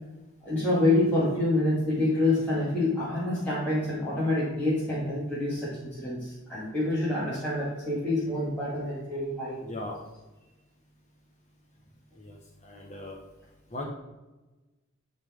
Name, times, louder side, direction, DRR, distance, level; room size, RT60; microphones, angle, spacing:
voice 1, 0.4-9.6, left 2 dB, 10° left, -11 dB, 2.1 m, -27 dB
voice 2, 9.6-10.0 12.1-13.2 13.7-13.8, left 2 dB, 35° left, -1 dB, 1.3 m, -39 dB
12.5 x 4.2 x 3.7 m, 1.1 s
head